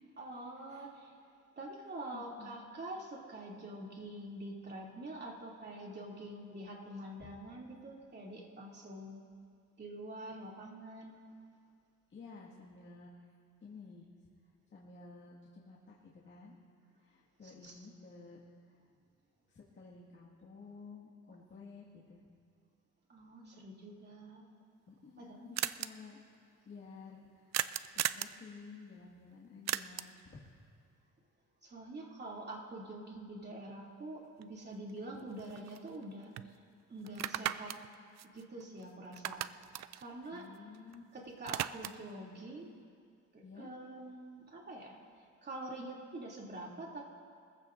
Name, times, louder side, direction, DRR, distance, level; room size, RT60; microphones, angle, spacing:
voice 1, 0.2-1.2 1.6-9.2 9.8-11.1 17.4-17.7 23.1-24.4 25.2-25.4 31.6-36.3 36.9-37.7 38.3-39.5 39.9-40.4 41.1-42.7 43.3-45.0 45.4-47.1, right 1 dB, 35° right, -3 dB, 2.9 m, -46 dB
voice 2, 2.1-2.7 7.2-7.3 12.1-13.1 13.6-14.1 14.7-16.5 17.0-18.4 19.5-22.2 24.9-26.2 26.7-27.7 27.9-30.4 35.1-35.3 40.3-41.0 43.4-43.7, left 4 dB, 40° left, -5 dB, 2.0 m, -53 dB
sound 1, 24.6-24.7 24.9-25.0 25.2-25.3 25.6-25.9 27.5-28.4 29.7-30.2 34.4-34.5 34.9-36.0 36.4-36.5 37.1-38.8 39.1-41.0 41.2-42.1, right 12 dB, 60° right, 0.5 m, -37 dB
23.0 x 15.0 x 2.6 m, 2.2 s
cardioid pair, 90°, 30 cm